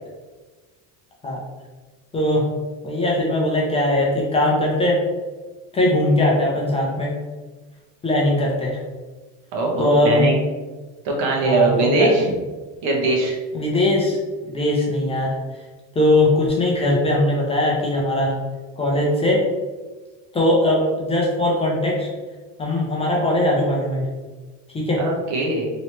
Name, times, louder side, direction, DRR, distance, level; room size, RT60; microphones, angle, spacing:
voice 1, 2.1-2.5 2.8-5.0 5.7-7.1 8.0-8.8 9.8-10.3 11.4-12.1 13.5-14.2 14.5-15.3 16.0-18.3 18.8-19.4 20.3-22.1 22.6-24.1 24.7-25.0, left 1 dB, 15° left, -3 dB, 0.4 m, -20 dB
voice 2, 9.5-10.4 11.0-12.2 12.8-13.4 25.0-25.6, right 2 dB, 80° right, -2 dB, 1.2 m, -21 dB
3.1 x 2.9 x 3.0 m, 1.3 s
cardioid pair, 150°, 39 cm